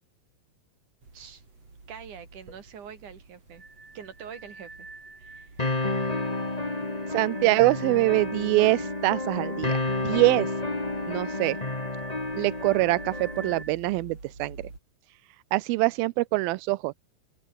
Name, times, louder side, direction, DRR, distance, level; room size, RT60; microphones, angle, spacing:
sound 1, 1.0-14.8, right 3 dB, 40° right, 7.8 m, -49 dB
voice 1, 1.9-3.6 3.9-4.9 5.2-5.9 6.3-6.5, right 7 dB, 55° right, 4.3 m, -45 dB
sound 2, 3.5-13.7, right 3 dB, 20° right, 3.5 m, -47 dB
sound 3, 5.6-13.6, left 2 dB, 15° left, 1.4 m, -30 dB
voice 2, 7.1-9.8 10.0-10.5 11.1-11.6 12.4-14.6 15.5-16.9, right 21 dB, 85° right, 2.4 m, -24 dB
open air
omnidirectional pair, 4.4 m